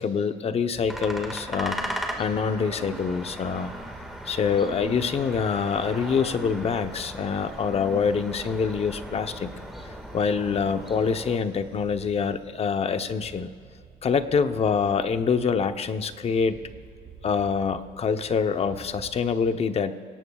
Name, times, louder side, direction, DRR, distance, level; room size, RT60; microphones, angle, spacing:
voice 1, 0.0-3.7 4.3-9.5 10.1-13.5 14.0-16.6 17.2-19.9, left 6 dB, 35° left, 9 dB, 0.8 m, -25 dB
sound 1, 0.6-19.5, right 5 dB, 55° right, 4.7 m, -50 dB
sound 2, 0.9-11.4, equal, ahead, 1.8 m, -38 dB
Growling / Cricket, 1.6-12.5, right 2 dB, 35° right, 4.1 m, -47 dB
28.0 x 18.0 x 2.4 m, 2.1 s
cardioid pair, 110°, 17 cm